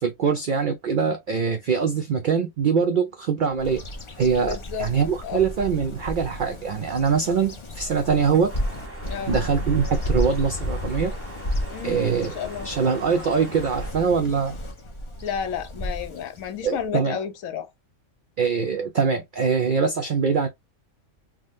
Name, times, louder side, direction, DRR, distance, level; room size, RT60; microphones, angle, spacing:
voice 1, 0.0-3.8 4.2-8.5 9.3-11.1 11.8-12.3 12.6-14.6 16.6-17.2 18.4-20.5, right 6 dB, 80° right, 0.4 m, -23 dB
Bird vocalization bird call bird song, 3.6-16.9, equal, 45° left, 0.3 m, -32 dB
voice 2, 4.4-4.9 5.2-5.5 9.1-9.4 11.7-12.7 15.2-17.7, left 8 dB, 80° left, 1.1 m, -32 dB
sound 1, 8.5-13.9, right 2 dB, 15° right, 0.7 m, -42 dB
3.6 x 2.1 x 2.6 m
omnidirectional pair, 1.4 m